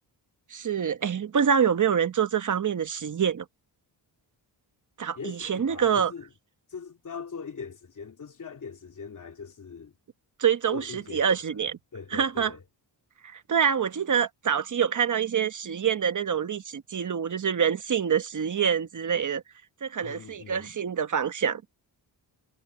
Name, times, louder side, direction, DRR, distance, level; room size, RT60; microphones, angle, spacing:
voice 1, 0.5-3.4 5.0-6.1 10.4-11.8 12.1-12.5 13.2-19.4 19.8-21.6, right 7 dB, 45° right, 1.1 m, -26 dB
voice 2, 5.2-6.3 6.7-9.9 10.7-11.6 11.9-12.6 20.0-20.7, left 5 dB, 45° left, 2.4 m, -41 dB
wide cardioid pair, 120°, 44 cm